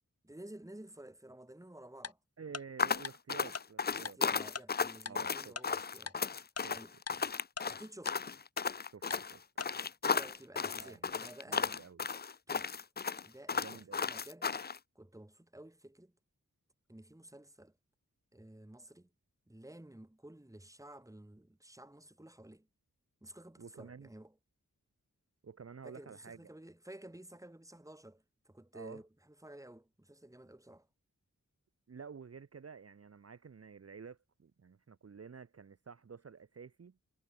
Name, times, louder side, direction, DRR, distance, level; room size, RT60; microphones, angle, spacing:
voice 1, 0.2-2.2 3.9-6.2 6.7-7.0 7.7-8.2 10.0-11.7 12.5-12.8 13.2-14.5 15.0-16.1 16.9-17.8 18.3-19.1 19.5-22.7 23.2-24.3 25.8-30.9, right 1 dB, 10° right, 1.8 m, -53 dB
Tick-tock, 2.0-2.1 2.5-2.6 3.0-3.1 3.5-3.6 4.1-4.2 4.6-4.7 5.1-5.2 5.6-5.7 6.1-6.2 6.6-6.7 7.1-7.2 7.6-7.7 8.1-8.2 8.6-8.7 9.1-9.2 9.6-9.7, left 5 dB, 50° left, 0.9 m, -40 dB
voice 2, 2.4-4.2 5.1-5.6 6.6-6.8 8.9-9.4 10.8-11.1 11.5-12.1 13.5-14.1 23.6-24.1 25.4-26.4 28.7-29.0 31.9-37.0, right 6 dB, 50° right, 0.8 m, -51 dB
sound 1, 2.8-14.8, left 5 dB, 30° left, 0.4 m, -35 dB
wide cardioid pair, 75°, 32 cm